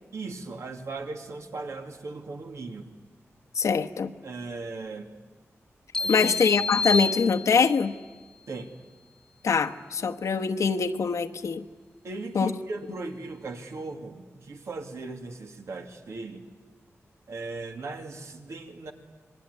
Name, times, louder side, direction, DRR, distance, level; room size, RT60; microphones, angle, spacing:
voice 1, 0.1-2.9 4.2-5.1 6.0-6.3 8.5-8.7 12.0-16.4 17.3-18.9, right 3 dB, 75° right, 4 dB, 2.5 m, -38 dB
voice 2, 3.5-4.1 6.1-7.9 9.4-11.6 12.3-12.5, left 5 dB, 85° left, 7 dB, 1.1 m, -24 dB
sound 1, 5.9-7.9, left 3 dB, 15° left, 1.4 m, -29 dB
27.0 x 21.5 x 9.6 m, 1.4 s
wide cardioid pair, 125°, 5 cm